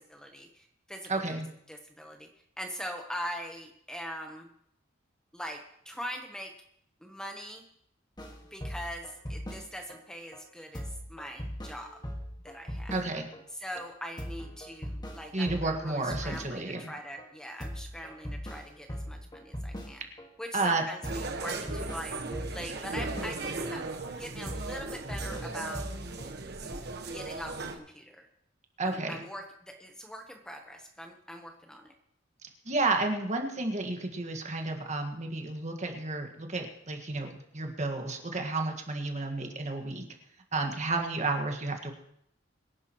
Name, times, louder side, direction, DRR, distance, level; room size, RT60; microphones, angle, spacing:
voice 1, 0.0-1.3 1.7-2.3 2.6-4.5 5.3-6.5 7.0-7.6 8.5-11.9 12.4-13.0 13.5-20.0 20.4-22.2 22.5-23.9 24.2-25.8 27.1-28.3 28.8-31.9, equal, 5° left, 3 dB, 1.0 m, -42 dB
voice 2, 1.1-1.5 12.9-13.3 15.3-16.9 20.5-20.8 28.8-29.2 32.7-40.0 40.5-41.9, right 3 dB, 40° right, 4 dB, 1.7 m, -31 dB
sound 1, 8.2-10.0 10.3-10.4 10.7-13.4 13.7-13.9 14.2-16.9 17.2-17.3 17.6-20.3 20.6-20.7 21.0-23.7 24.0-24.1 24.5-26.3, equal, 20° left, 1.7 m, -40 dB
sound 2, 21.0-27.8, right 3 dB, 60° right, 1.3 m, -37 dB
24.5 x 11.0 x 3.1 m, 0.72 s
head